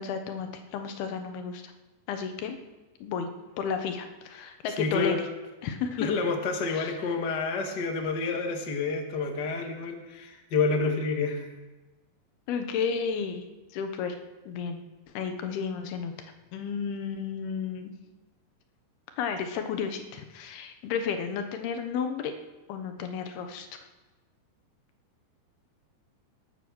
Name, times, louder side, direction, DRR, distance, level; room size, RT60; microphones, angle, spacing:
voice 1, 0.0-1.7 2.1-2.6 3.0-3.3 3.6-5.2 5.6-6.1 6.7-7.0 12.5-13.4 13.7-14.2 14.5-14.8 15.1-16.1 16.5-17.9 19.2-22.4 22.7-23.7, left 6 dB, 80° left, 7 dB, 3.1 m, -32 dB
voice 2, 4.8-5.2 6.0-11.5, left 4 dB, 35° left, 3 dB, 1.8 m, -29 dB
21.0 x 9.0 x 6.2 m, 1.2 s
omnidirectional pair, 4.4 m